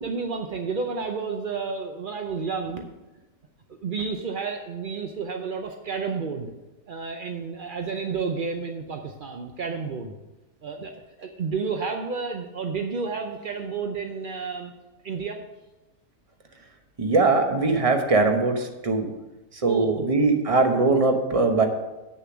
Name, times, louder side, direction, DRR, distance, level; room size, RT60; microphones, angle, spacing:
voice 1, 0.0-2.9 3.8-6.5 6.9-10.1 10.6-10.9 11.2-14.7 15.0-15.4 19.6-20.0, right 5 dB, 60° right, 4 dB, 0.5 m, -31 dB
voice 2, 17.0-19.1 19.5-21.6, right 3 dB, 25° right, 5 dB, 0.8 m, -21 dB
8.5 x 6.7 x 6.2 m, 1.0 s
omnidirectional pair, 1.7 m